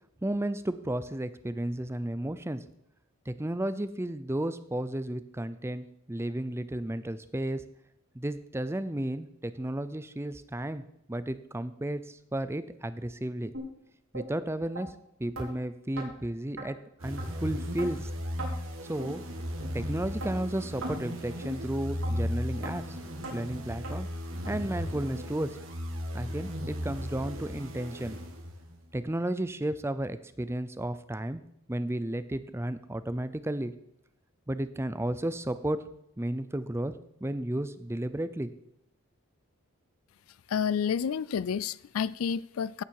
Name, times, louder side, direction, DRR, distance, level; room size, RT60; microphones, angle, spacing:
voice 1, 0.2-2.6 3.3-7.6 8.1-10.8 11.1-13.5 14.1-14.9 15.2-18.1 18.9-19.2 19.7-23.0 23.3-24.1 24.5-25.5 26.1-28.2 28.9-31.4 31.7-33.7 34.5-35.8 36.2-36.9 37.2-38.5, right 1 dB, 10° right, 0.6 m, -33 dB
sound 1, 13.5-13.7 14.1-14.3 14.8-14.9 15.4-15.5 16.0-16.1 16.6-16.7 17.2-17.3 17.8-17.9 18.4-18.5 19.0-19.1 19.6-19.7 20.2-20.3 20.8-21.0 21.4-21.6 22.0-22.1 22.6-22.8 23.2-23.4 23.8-24.0 24.4-24.5 25.1-25.2 25.7-25.8 26.3-26.4, right 1 dB, 80° right, 4.3 m, -38 dB
sound 2, 17.0-28.8, equal, 65° right, 2.1 m, -36 dB
voice 2, 40.5-42.8, left 7 dB, 75° left, 0.4 m, -30 dB
16.0 x 8.7 x 4.7 m
head